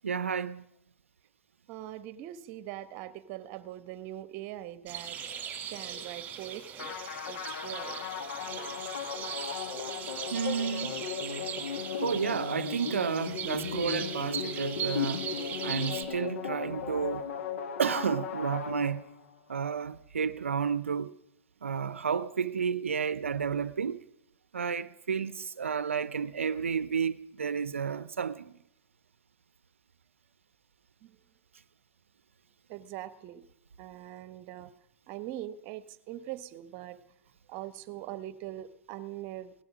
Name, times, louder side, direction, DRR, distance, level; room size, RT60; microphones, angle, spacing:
voice 1, 0.0-0.6 10.3-11.0 12.0-15.3 15.6-17.3 17.8-19.1 19.5-21.1 21.6-24.0 24.5-28.5, right 6 dB, 85° right, 0.6 m, -31 dB
voice 2, 1.7-6.9 7.3-8.0 31.0-31.2 32.7-33.4 33.8-34.7 35.1-37.0 37.5-39.5, right 13 dB, 45° right, 1.1 m, -42 dB
sound 1, 4.9-16.0, right 8 dB, 25° right, 2.5 m, -39 dB
sound 2, 6.8-19.3, left 7 dB, 70° left, 1.7 m, -36 dB
17.5 x 12.0 x 6.1 m
hypercardioid pair, 105°, 7 cm